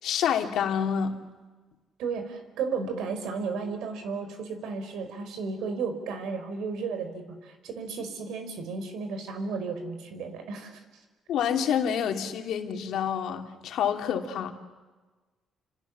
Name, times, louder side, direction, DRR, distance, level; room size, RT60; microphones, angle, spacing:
voice 1, 0.0-1.2 11.3-14.5, left 8 dB, 80° left, 5 dB, 2.6 m, -28 dB
voice 2, 2.0-10.8, right 5 dB, 85° right, 8 dB, 4.5 m, -34 dB
29.5 x 26.5 x 7.3 m, 1.3 s
cardioid pair, 90°, 0 cm